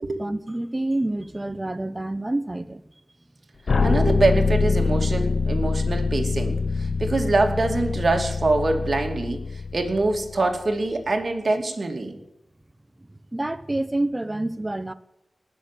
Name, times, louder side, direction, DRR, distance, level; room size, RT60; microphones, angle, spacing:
voice 1, 0.2-2.8 3.8-3.9 6.9-7.0 12.1-12.2 13.3-14.9, right 1 dB, 20° right, 0.8 m, -28 dB
sound 1, 3.7-10.6, left 4 dB, 65° left, 0.8 m, -24 dB
voice 2, 3.8-12.2, right 2 dB, 55° right, 2.6 m, -24 dB
20.0 x 6.8 x 9.2 m
wide cardioid pair, 75°, 0 cm